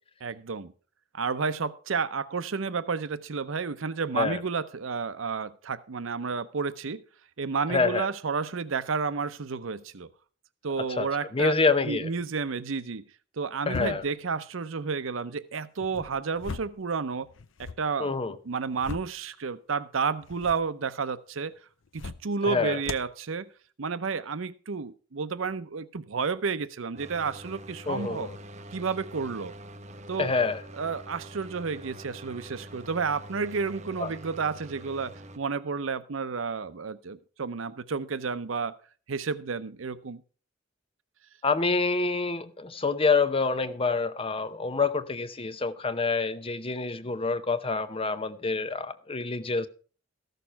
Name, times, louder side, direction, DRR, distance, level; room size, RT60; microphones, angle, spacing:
voice 1, 0.2-0.7 1.1-7.0 7.4-10.1 10.6-11.6 11.8-13.0 13.4-17.3 17.6-18.1 18.5-21.6 21.9-23.5 23.8-28.3 28.7-29.5 30.1-30.3 30.7-38.8 39.1-40.2, right 5 dB, 85° right, 0.7 m, -31 dB
voice 2, 7.7-8.1 11.0-11.1 11.3-12.1 13.7-14.0 18.0-18.3 22.5-22.8 27.9-28.4 30.2-30.6 34.0-34.1 41.4-49.7, left 4 dB, 30° left, 0.7 m, -27 dB
sound 1, 13.7-14.2 15.8-16.8 17.2-17.8 18.5-19.2 20.2-20.7 21.8-22.3 22.8-23.1, left 4 dB, 75° left, 0.7 m, -39 dB
sound 2, 27.0-35.4, right 1 dB, 35° right, 0.9 m, -45 dB
14.0 x 6.7 x 5.7 m
head